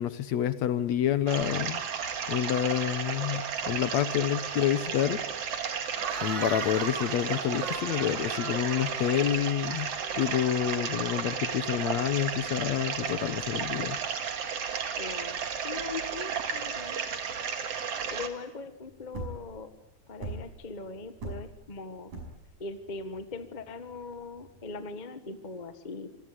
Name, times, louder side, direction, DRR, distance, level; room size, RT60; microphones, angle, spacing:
voice 1, 0.0-1.8 2.3-5.2 6.2-14.0, left 10 dB, 65° left, 14 dB, 2.2 m, -28 dB
sound 1, 1.3-18.3, right 7 dB, 55° right, 2.9 m, -33 dB
Cheering / Crowd, 5.9-10.5, right 5 dB, 35° right, 1.8 m, -40 dB
voice 2, 15.0-15.4 15.6-17.0 18.1-19.7 20.1-22.1 22.6-26.1, left 4 dB, 25° left, 10 dB, 1.0 m, -40 dB
sound 2, 18.9-24.8, right 2 dB, 80° right, 7.1 m, -41 dB
26.5 x 20.0 x 9.9 m, 0.92 s
omnidirectional pair, 3.5 m